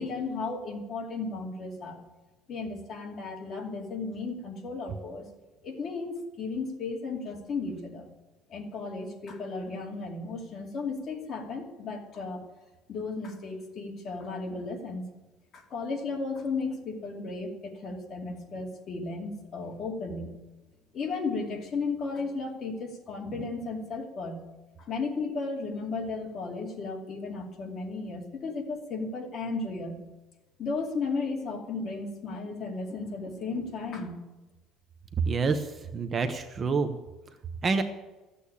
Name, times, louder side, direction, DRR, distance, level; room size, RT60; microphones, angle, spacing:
voice 1, 0.0-2.0 2.5-5.2 5.6-8.1 8.5-12.4 12.9-15.1 15.5-20.3 20.9-24.4 24.8-30.0 30.6-34.2, left 3 dB, 35° left, 0 dB, 2.5 m, -34 dB
voice 2, 35.3-36.9 37.6-37.8, right 4 dB, 25° right, 8 dB, 0.7 m, -27 dB
14.5 x 8.5 x 8.6 m, 1.1 s
cardioid pair, 170°, 0 cm